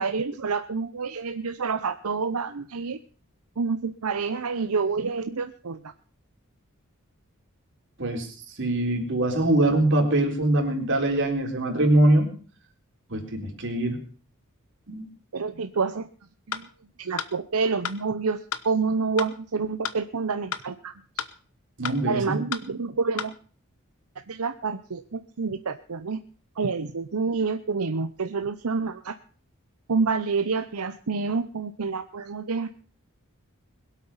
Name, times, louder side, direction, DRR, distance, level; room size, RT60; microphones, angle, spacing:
voice 1, 0.0-3.0 3.6-5.8 15.3-16.1 16.5-16.7 17.0-21.3 22.1-23.3 24.3-26.2 26.6-29.2 29.9-32.7, right 4 dB, 85° right, 9 dB, 0.8 m, -28 dB
voice 2, 8.6-12.3 13.1-14.0 14.9-15.1 21.8-22.2, right 1 dB, 55° right, 2 dB, 3.9 m, -23 dB
sound 1, 16.5-16.6 17.2-17.3 17.8-18.0 18.5-18.6 19.2-19.3 19.8-20.0 20.5-20.6 21.2-21.3 21.8-22.0 22.5-22.6 23.2-23.3, left 7 dB, 70° left, 1.1 m, -31 dB
21.5 x 8.4 x 5.7 m, 0.42 s
head